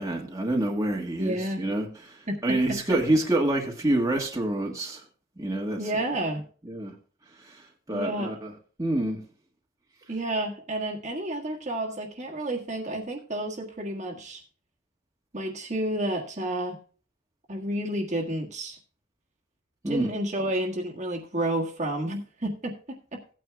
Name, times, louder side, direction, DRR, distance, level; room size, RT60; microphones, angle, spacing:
voice 1, 0.0-5.0 5.4-5.8 6.6-6.9 7.4-8.5 8.8-9.2 19.8-20.1, right 1 dB, 15° right, 1.5 m, -27 dB
voice 2, 1.2-1.6 2.3-2.4 5.8-6.4 7.9-8.3 10.1-14.4 15.3-16.8 17.5-18.8 19.9-23.2, right 1 dB, 35° right, 1.6 m, -30 dB
16.5 x 9.2 x 2.3 m
head